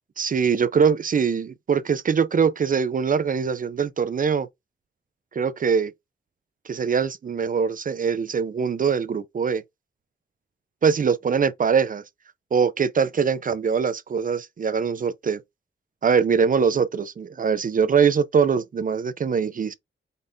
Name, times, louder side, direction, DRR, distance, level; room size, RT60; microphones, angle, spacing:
voice 1, 0.2-4.5 5.3-5.9 6.7-9.6 10.8-12.0 12.5-15.4 16.0-19.7, right 6 dB, 45° right, 0.4 m, -22 dB
5.2 x 3.3 x 2.6 m
wide cardioid pair, 150°, 20 cm